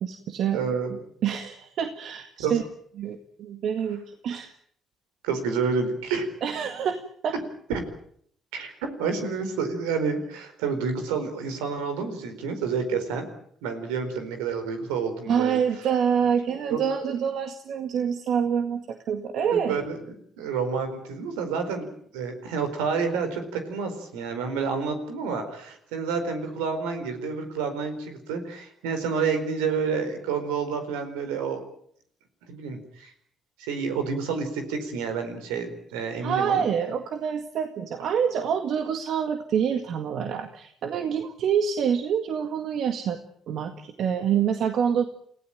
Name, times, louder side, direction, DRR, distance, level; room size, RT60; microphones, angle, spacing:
voice 1, 0.0-0.6 1.2-2.6 3.0-4.5 6.4-7.3 15.3-19.8 36.2-43.2 43.5-45.0, right 7 dB, 65° right, 8 dB, 1.9 m, -26 dB
voice 2, 0.5-0.9 2.4-2.5 5.2-6.3 7.7-7.9 8.5-8.7 9.0-13.2 13.6-15.9 16.7-16.8 19.5-21.9 22.1-31.7 32.5-33.1 33.7-36.6, right 5 dB, 80° right, 8 dB, 4.5 m, -29 dB
29.0 x 16.5 x 9.1 m, 0.66 s
hypercardioid pair, 50°, 0 cm